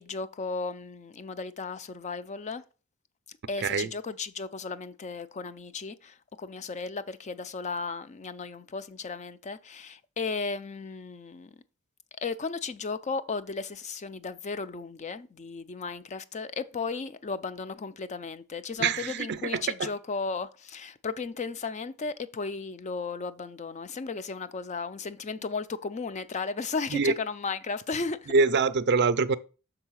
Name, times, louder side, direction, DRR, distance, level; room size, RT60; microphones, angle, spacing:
voice 1, 0.0-2.6 3.5-11.6 12.2-28.3, left 4 dB, 35° left, 0.4 m, -35 dB
voice 2, 18.8-19.9 26.9-27.1 28.3-29.4, right 4 dB, 50° right, 0.5 m, -25 dB
6.5 x 3.9 x 6.2 m
head